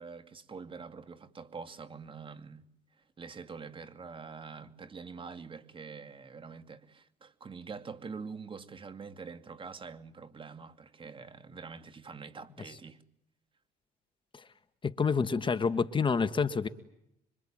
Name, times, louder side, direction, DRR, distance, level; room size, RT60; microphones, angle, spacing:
voice 1, 0.0-2.7 3.0-13.0, right 5 dB, 30° right, 2.5 m, -45 dB
voice 2, 14.8-16.7, left 5 dB, 30° left, 1.6 m, -28 dB
26.5 x 24.5 x 9.0 m
cardioid pair, 110°, 17 cm